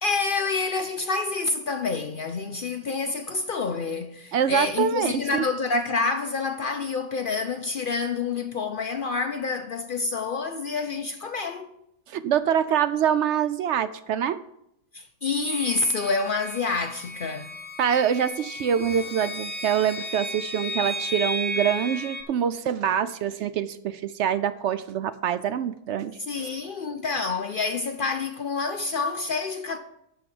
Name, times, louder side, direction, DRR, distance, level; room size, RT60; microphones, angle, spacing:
voice 1, 0.0-11.7 14.9-17.5 26.3-29.8, left 4 dB, 60° left, 0.5 m, -28 dB
voice 2, 4.3-5.4 12.1-14.4 17.8-26.2, right 9 dB, 70° right, 0.7 m, -25 dB
sound 1, 15.5-22.2, left 1 dB, 5° left, 0.9 m, -34 dB
12.0 x 4.2 x 7.5 m
omnidirectional pair, 1.6 m